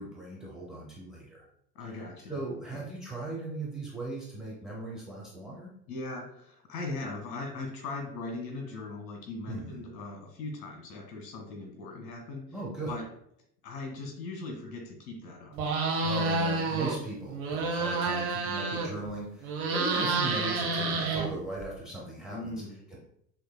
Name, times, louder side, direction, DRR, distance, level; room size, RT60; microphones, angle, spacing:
voice 1, 0.0-1.4 1.8-2.0 2.3-5.7 9.5-9.8 12.5-13.0 16.0-22.6 22.9-23.0, right 2 dB, ahead, -3 dB, 0.7 m, -38 dB
voice 2, 1.7-2.3 2.7-2.9 5.9-12.4 12.9-13.0 13.6-15.6 19.6-19.9 22.3-23.0, left 3 dB, 50° left, 2 dB, 1.4 m, -39 dB
sound 1, 15.5-17.0 17.3-19.1 19.4-21.7, right 3 dB, 55° right, 1.0 m, -29 dB
6.1 x 2.7 x 2.2 m, 0.72 s
figure-of-eight pair, 75°, 50 cm